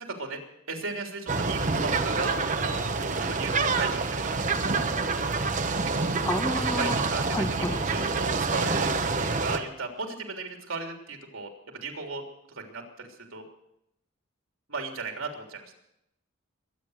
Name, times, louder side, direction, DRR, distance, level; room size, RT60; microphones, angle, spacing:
voice 1, 0.7-4.9 5.8-6.1 6.6-12.2 12.5-13.4 14.7-15.7, right 3 dB, 80° right, 2 dB, 3.3 m, -36 dB
sound 1, 1.3-9.6, right 4 dB, 40° right, 1.1 m, -27 dB
voice 2, 6.2-7.0 7.3-7.8, left 1 dB, 15° left, 7 dB, 1.1 m, -30 dB
22.5 x 9.5 x 6.5 m, 0.81 s
head